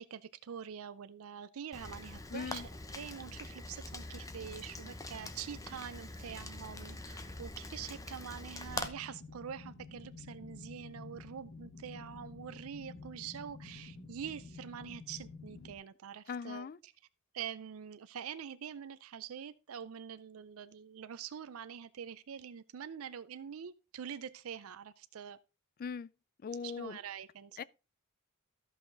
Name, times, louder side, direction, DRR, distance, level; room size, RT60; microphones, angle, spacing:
voice 1, 0.0-16.9 17.3-25.4 26.6-27.6, right 8 dB, 85° right, 0.5 m, -45 dB
Rain, 1.7-8.9, left 2 dB, 15° left, 0.8 m, -44 dB
voice 2, 2.3-2.7 16.3-16.8 25.8-26.1 26.4-27.0 27.6-27.7, left 5 dB, 45° left, 0.4 m, -40 dB
sound 1, 8.7-15.7, left 3 dB, 60° left, 1.7 m, -50 dB
14.0 x 5.7 x 3.8 m
head